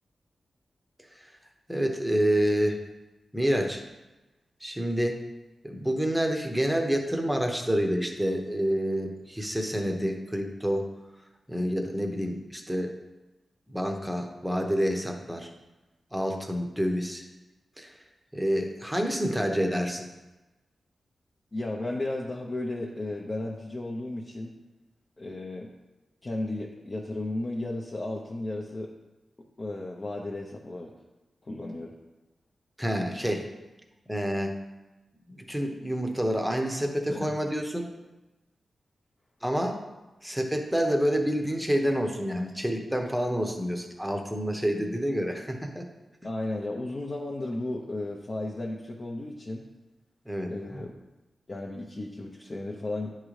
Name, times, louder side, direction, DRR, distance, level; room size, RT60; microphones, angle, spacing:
voice 1, 1.7-2.7 3.3-3.8 4.6-5.2 5.6-10.9 11.5-12.9 13.7-15.5 16.1-17.2 17.8-18.0 18.3-20.1 32.8-33.5 34.1-34.6 35.3-37.9 39.4-39.8 40.2-45.9 50.3-50.8, equal, 5° right, 2 dB, 0.8 m, -28 dB
voice 2, 21.5-24.5 25.2-25.7 26.2-28.9 29.6-30.9 31.4-32.0 37.1-37.3 46.2-49.7 50.5-50.9 51.5-53.2, left 2 dB, 35° left, -1 dB, 0.7 m, -34 dB
10.5 x 3.7 x 3.2 m, 1.1 s
wide cardioid pair, 105°, 0 cm